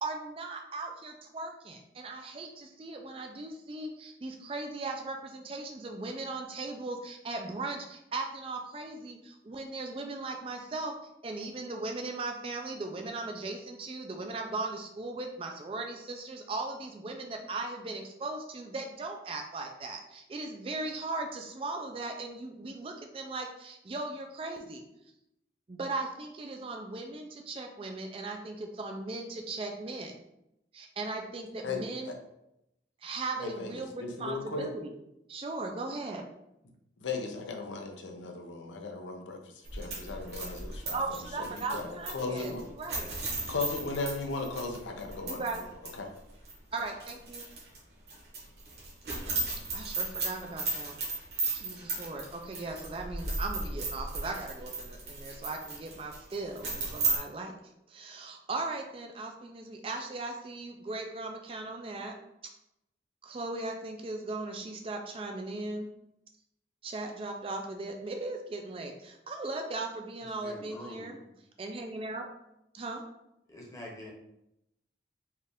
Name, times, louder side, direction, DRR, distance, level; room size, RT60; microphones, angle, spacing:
voice 1, 0.0-11.0 11.2-24.8 25.7-30.1 30.7-32.1 33.0-34.9 35.3-36.2 40.9-43.1 45.3-45.6 46.7-47.4 49.7-51.0 51.5-57.5 57.9-62.2 63.2-65.9 66.8-71.2 71.6-72.3 72.7-73.0, right 3 dB, 30° right, 3 dB, 0.4 m, -38 dB
voice 2, 31.6-32.2 33.4-33.7 34.0-34.7 37.0-41.0 41.4-42.6 43.5-45.7 46.0-46.1, left 3 dB, 85° left, 3 dB, 0.6 m, -36 dB
sound 1, 39.7-45.6 45.9-46.0 46.5-47.8 48.1-57.2, right 3 dB, 60° right, 1.3 m, -35 dB
voice 3, 70.2-71.2 73.5-74.1, left 1 dB, 15° left, -3 dB, 0.9 m, -46 dB
4.4 x 2.4 x 3.5 m, 0.84 s
head